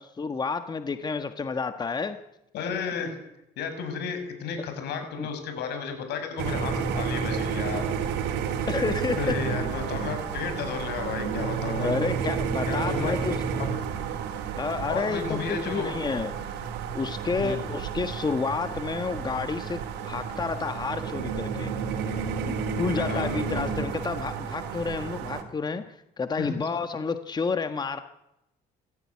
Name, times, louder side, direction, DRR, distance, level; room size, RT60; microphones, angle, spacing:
voice 1, 0.2-2.2 5.2-5.3 8.7-9.2 11.8-13.4 14.6-16.3 16.9-21.7 22.5-28.0, left 4 dB, 25° left, 9 dB, 1.4 m, -30 dB
voice 2, 2.5-3.2 3.6-7.9 8.6-8.7 9.2-11.9 12.7-13.2 14.9-15.9 17.4-17.6 23.0-23.3 26.4-26.5, left 6 dB, 75° left, 7 dB, 6.4 m, -33 dB
sound 1, 6.4-25.4, right 6 dB, 90° right, 3.7 m, -31 dB
26.5 x 15.0 x 9.8 m, 0.87 s
cardioid pair, 110°, 17 cm